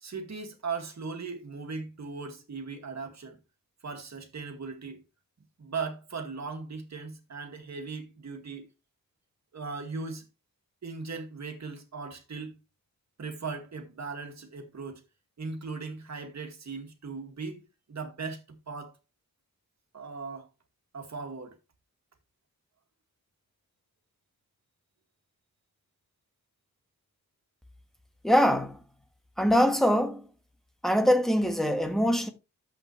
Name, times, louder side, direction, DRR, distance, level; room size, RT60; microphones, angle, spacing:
voice 1, 0.0-3.4 3.8-5.0 5.6-8.7 9.5-10.3 10.8-12.6 13.2-15.0 15.4-17.6 17.9-18.9 19.9-20.5 20.9-21.6, right 4 dB, 55° right, 2.1 m, -38 dB
voice 2, 28.2-28.8 29.4-30.3 30.8-32.3, equal, ahead, 1.3 m, -23 dB
11.5 x 7.9 x 3.2 m
wide cardioid pair, 165°, 34 cm